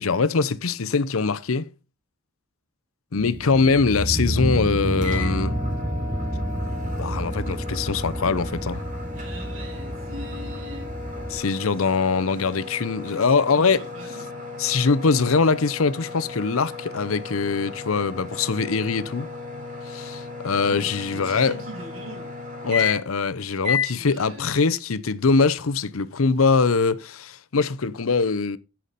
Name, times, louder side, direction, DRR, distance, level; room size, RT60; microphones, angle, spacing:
voice 1, 0.0-1.7 3.1-5.5 7.0-8.8 11.3-13.8 14.6-19.3 19.9-21.6 22.6-28.6, left 4 dB, 85° left, 0.7 m, -22 dB
sound 1, 3.2-11.4, right 1 dB, 10° right, 1.0 m, -29 dB
sound 2, 5.0-23.2 23.6-24.0, left 5 dB, 35° right, 3.8 m, -34 dB
voice 2, 9.1-10.9 13.1-14.2 20.7-22.3 23.9-24.7, right 1 dB, 75° right, 3.3 m, -41 dB
13.5 x 5.8 x 4.1 m
head